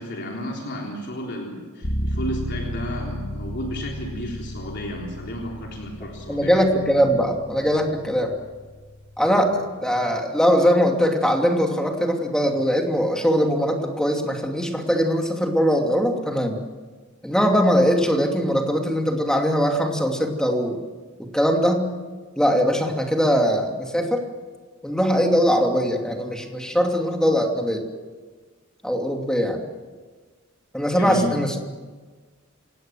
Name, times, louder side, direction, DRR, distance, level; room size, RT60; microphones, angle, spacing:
voice 1, 0.0-6.6 31.0-31.3, equal, 55° left, -1 dB, 3.8 m, -32 dB
sound 1, 1.8-9.6, equal, 85° left, 2.4 m, -33 dB
voice 2, 6.3-8.3 9.2-16.6 17.2-20.8 21.3-21.9 22.4-24.2 24.8-27.8 28.8-29.6 30.7-31.6, equal, 5° left, 2 dB, 2.7 m, -21 dB
27.5 x 18.0 x 7.6 m, 1.4 s
head